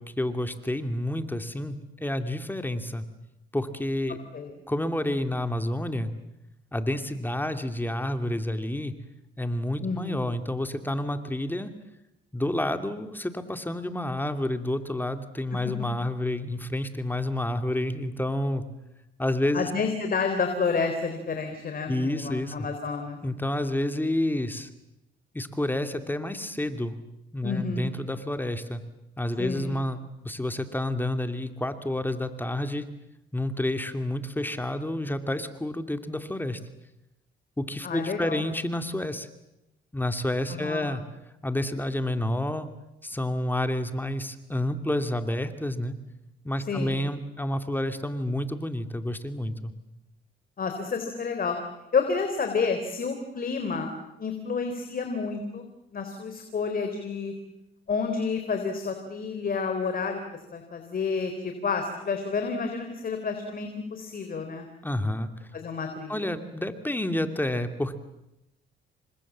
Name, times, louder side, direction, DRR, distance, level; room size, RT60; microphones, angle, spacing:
voice 1, 0.0-3.0 3.5-4.2 4.7-6.1 6.7-8.9 9.4-11.7 12.3-18.6 19.2-19.7 21.9-22.7 23.2-24.7 25.3-27.0 27.3-28.8 29.2-30.0 30.2-32.9 33.3-36.6 37.6-39.3 39.9-41.0 41.4-42.7 43.0-45.9 46.4-49.7 64.8-65.5 66.1-68.0, left 1 dB, 10° left, 8 dB, 2.6 m, -29 dB
voice 2, 9.8-10.2 19.5-23.2 27.4-27.9 29.4-29.8 37.8-38.4 40.5-40.9 46.7-47.0 50.6-51.6 51.9-53.9 54.2-55.7 55.9-57.3 57.9-64.7 65.5-66.3, left 5 dB, 45° left, 6 dB, 3.9 m, -30 dB
29.5 x 25.0 x 7.5 m, 0.91 s
cardioid pair, 90°, 20 cm